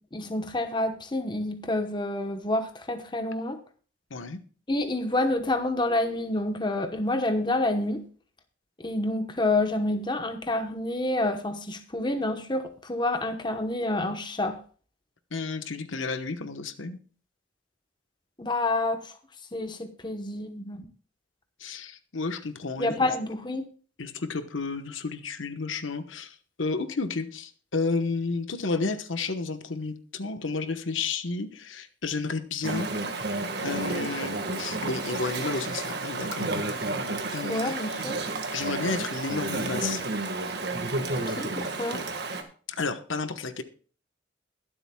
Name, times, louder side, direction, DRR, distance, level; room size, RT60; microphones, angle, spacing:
voice 1, 0.1-3.6 4.7-8.0 8.8-14.6 18.4-19.1 19.5-20.8 22.8-23.6 37.5-38.2 41.1-42.0, left 2 dB, 25° left, 7 dB, 1.0 m, -28 dB
voice 2, 15.3-17.0 21.6-23.1 24.0-32.9 33.6-36.6 37.3-37.7 38.5-40.0 42.7-43.6, left 4 dB, 80° left, 9 dB, 1.1 m, -32 dB
Chatter / Stream, 32.6-42.4, right 2 dB, 55° right, 1.6 m, -31 dB
22.0 x 7.9 x 2.3 m, 0.40 s
head